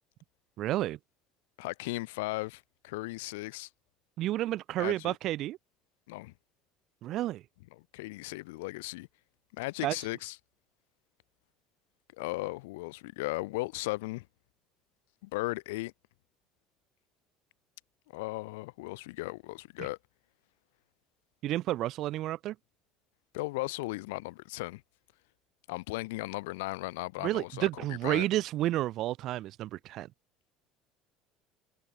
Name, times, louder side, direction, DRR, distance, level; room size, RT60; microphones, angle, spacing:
voice 1, 0.6-1.0 4.2-5.6 7.0-7.4 9.8-9.9 19.8-19.9 21.4-22.5 27.2-30.1, right 14 dB, 60° right, 1.3 m, -31 dB
voice 2, 1.6-3.7 4.8-5.2 6.1-6.3 7.8-9.1 9.5-10.4 12.2-14.3 15.2-15.9 18.1-20.0 23.3-24.8 25.7-28.3, left 22 dB, 85° left, 2.7 m, -36 dB
supercardioid pair, 85°, 0 cm